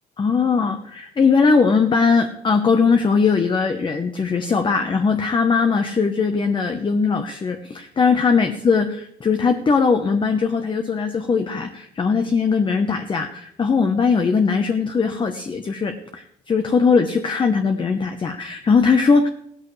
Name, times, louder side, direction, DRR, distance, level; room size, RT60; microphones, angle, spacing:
voice 1, 0.2-19.3, left 5 dB, 30° left, 6 dB, 1.0 m, -20 dB
16.0 x 13.5 x 3.3 m, 0.73 s
cardioid pair, 110°, 17 cm